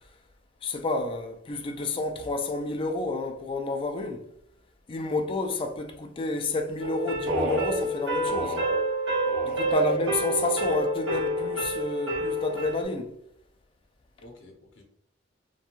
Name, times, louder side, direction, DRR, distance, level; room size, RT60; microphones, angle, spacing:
voice 1, 0.6-4.3 4.9-8.6 9.4-13.1, left 2 dB, 30° left, 0.3 m, -30 dB
sound 1, 6.8-12.8, right 1 dB, 75° right, 0.8 m, -28 dB
voice 2, 9.4-10.0 10.4-10.9 14.2-14.8, left 2 dB, 75° left, 0.7 m, -43 dB
2.5 x 2.3 x 2.8 m
head